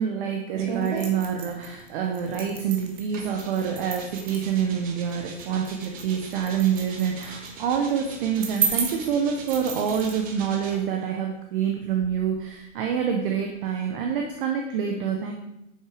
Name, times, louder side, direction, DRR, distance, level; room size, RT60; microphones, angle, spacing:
voice 1, 0.0-15.3, right 7 dB, 45° right, 2 dB, 1.2 m, -27 dB
sound 1, 0.5-10.1, right 6 dB, 70° right, 2.2 m, -34 dB
sound 2, 3.1-11.0 11.9-14.3, right 4 dB, 20° right, 1.1 m, -43 dB
9.1 x 6.5 x 4.9 m, 0.87 s
hypercardioid pair, 150°, 37 cm